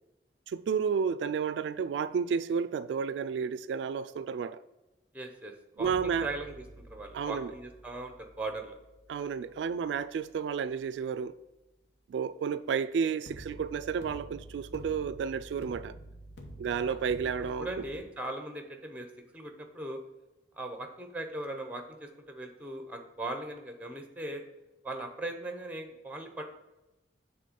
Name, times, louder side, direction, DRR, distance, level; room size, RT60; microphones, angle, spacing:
voice 1, 0.5-4.6 5.8-6.3 7.1-7.5 9.1-11.3 12.1-16.0 16.6-17.7, right 6 dB, 85° right, 0.3 m, -31 dB
voice 2, 5.1-6.6 6.9-8.8 13.0-13.1 16.7-17.0 17.6-19.1 19.3-20.0 20.5-24.4 24.8-26.4, right 2 dB, 10° right, 0.8 m, -39 dB
sound 1, 5.8-10.9 13.3-18.0, right 1 dB, 75° left, 1.1 m, -49 dB
7.5 x 3.6 x 5.3 m
head